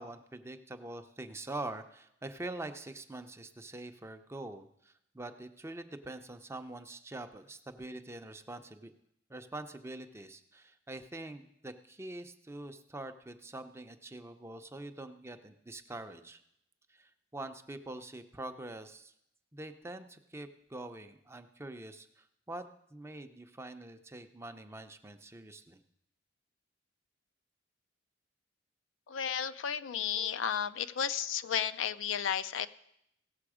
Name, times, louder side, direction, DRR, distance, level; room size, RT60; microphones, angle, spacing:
voice 1, 0.0-8.9 9.3-16.4 16.9-19.1 19.5-22.6 22.9-25.8, right 2 dB, 15° right, 8 dB, 0.6 m, -44 dB
voice 2, 29.1-32.7, left 8 dB, 70° left, 11 dB, 0.4 m, -33 dB
16.5 x 6.8 x 4.9 m, 0.76 s
head